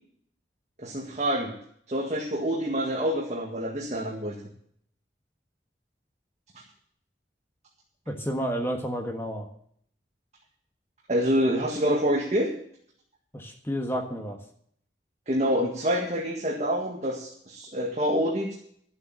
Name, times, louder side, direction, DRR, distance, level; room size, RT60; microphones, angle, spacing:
voice 1, 0.8-1.5 1.9-4.3 11.1-12.5 15.3-18.5, equal, 40° right, -1 dB, 1.9 m, -26 dB
voice 2, 8.1-9.5 13.3-14.4, equal, 15° left, 4 dB, 1.4 m, -30 dB
12.5 x 8.0 x 7.5 m, 0.64 s
head